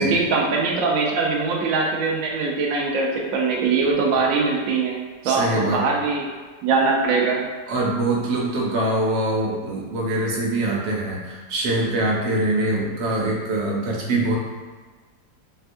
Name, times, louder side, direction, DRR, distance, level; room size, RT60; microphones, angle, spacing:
voice 1, 0.0-5.0 5.2-6.3 6.6-7.4, right 4 dB, 70° right, -1 dB, 0.9 m, -22 dB
voice 2, 5.2-5.8 7.7-14.4, right 2 dB, 90° right, -2 dB, 1.4 m, -23 dB
4.2 x 2.2 x 2.5 m, 1.4 s
omnidirectional pair, 1.9 m